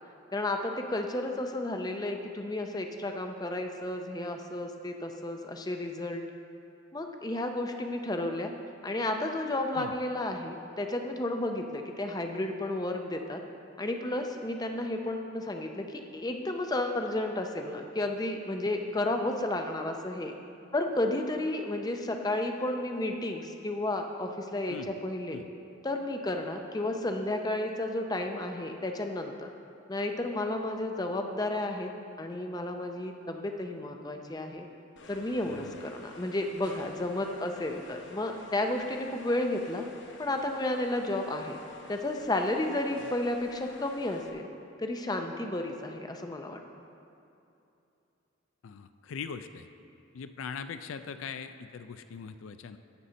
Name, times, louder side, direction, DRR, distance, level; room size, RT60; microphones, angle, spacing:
voice 1, 0.3-6.2 6.9-8.5 8.8-13.4 13.8-20.3 20.7-25.4 25.8-29.5 29.9-31.9 32.2-34.7 35.1-39.8 40.2-41.6 41.9-44.5 44.8-46.6, left 1 dB, 20° left, 4 dB, 0.5 m, -32 dB
sound 1, 35.0-44.3, left 3 dB, 60° left, 0.8 m, -51 dB
voice 2, 48.6-49.7 50.1-52.8, left 6 dB, 75° left, 10 dB, 0.4 m, -41 dB
11.5 x 4.2 x 7.9 m, 2.8 s
head